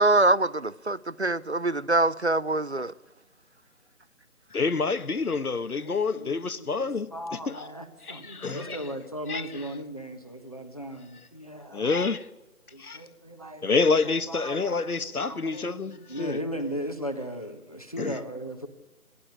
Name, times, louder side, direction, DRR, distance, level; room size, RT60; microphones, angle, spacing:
voice 1, 0.0-2.9, right 2 dB, 50° right, 0.6 m, -24 dB
voice 2, 4.5-7.7 8.0-8.9 9.3-9.8 11.7-12.3 12.8-13.0 13.6-16.4 18.0-18.2, left 4 dB, 80° left, 1.3 m, -28 dB
voice 3, 5.8-6.9 7.1-11.9 12.7-13.9 14.3-14.8 15.2-18.7, equal, 25° left, 1.2 m, -37 dB
28.0 x 11.5 x 8.4 m
figure-of-eight pair, 175°, 44 cm